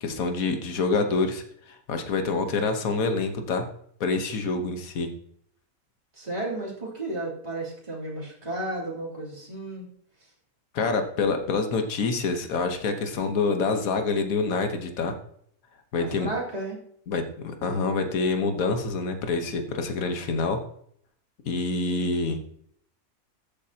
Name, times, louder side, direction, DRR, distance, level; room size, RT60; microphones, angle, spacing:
voice 1, 0.0-3.7 4.0-5.1 10.7-15.2 15.9-16.3 17.1-20.6 21.4-22.4, left 4 dB, 70° left, 6 dB, 1.6 m, -26 dB
voice 2, 6.2-9.8 16.0-16.8, right 2 dB, 25° right, -6 dB, 3.4 m, -33 dB
14.0 x 8.5 x 2.9 m, 0.65 s
omnidirectional pair, 1.6 m